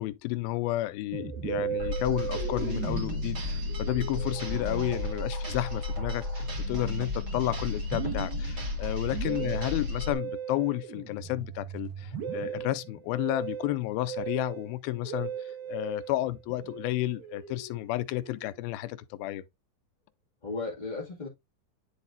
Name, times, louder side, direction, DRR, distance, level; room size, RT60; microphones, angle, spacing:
voice 1, 0.0-19.4, left 16 dB, 90° left, 2.5 m, -32 dB
Musical instrument, 1.1-18.7, right 8 dB, 80° right, 3.4 m, -38 dB
sound 1, 1.8-10.1, left 2 dB, 30° right, 2.3 m, -33 dB
voice 2, 4.4-4.9 20.4-21.3, left 3 dB, 20° left, 1.3 m, -36 dB
10.5 x 4.1 x 2.5 m
omnidirectional pair, 4.1 m